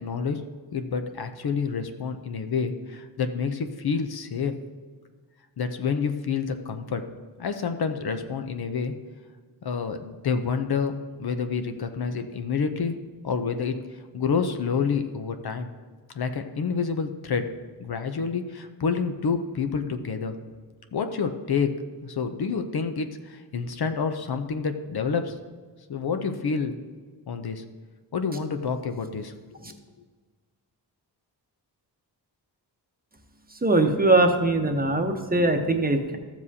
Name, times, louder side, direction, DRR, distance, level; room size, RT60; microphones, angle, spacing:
voice 1, 0.0-0.4 0.7-4.5 5.6-7.0 7.4-8.9 9.6-13.0 13.2-13.8 14.1-15.7 16.1-17.5 17.8-20.4 20.9-21.7 22.0-25.3 25.9-26.8 27.3-27.6 28.1-29.3, left 5 dB, 60° left, 7 dB, 0.7 m, -28 dB
voice 2, 33.6-36.2, right 2 dB, 20° right, 4 dB, 0.9 m, -21 dB
13.5 x 7.3 x 2.8 m, 1.5 s
wide cardioid pair, 100°, 42 cm